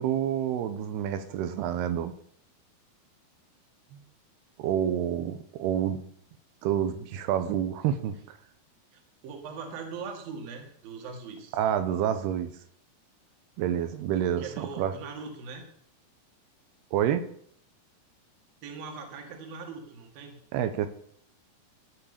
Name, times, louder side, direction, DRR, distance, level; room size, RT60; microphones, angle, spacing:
voice 1, 0.0-2.1 3.9-4.0 4.6-6.0 6.6-8.4 11.5-12.5 13.6-14.9 16.9-17.2 20.5-20.9, right 10 dB, 80° right, 10 dB, 2.9 m, -28 dB
voice 2, 8.9-11.6 14.1-15.6 18.6-20.4, right 5 dB, 65° right, 3 dB, 3.5 m, -41 dB
16.5 x 5.8 x 6.8 m, 0.63 s
omnidirectional pair, 4.8 m